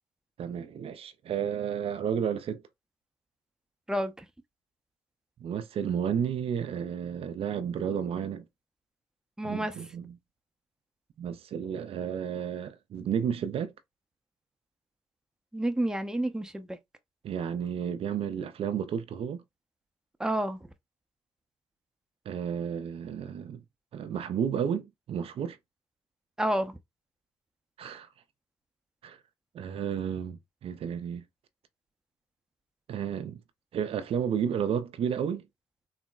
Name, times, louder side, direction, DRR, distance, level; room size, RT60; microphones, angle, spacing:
voice 1, 0.4-2.6 5.4-8.4 9.4-10.2 11.2-13.7 17.2-19.4 22.3-23.6 23.9-25.6 27.8-28.1 29.0-29.2 29.5-31.2 32.9-33.4 33.7-35.5, right 8 dB, 60° right, 0.4 m, -32 dB
voice 2, 3.9-4.2 9.4-9.7 15.5-16.8 20.2-20.7 26.4-26.8, right 1 dB, 5° right, 0.6 m, -29 dB
3.8 x 2.0 x 2.3 m
supercardioid pair, 50°, 11 cm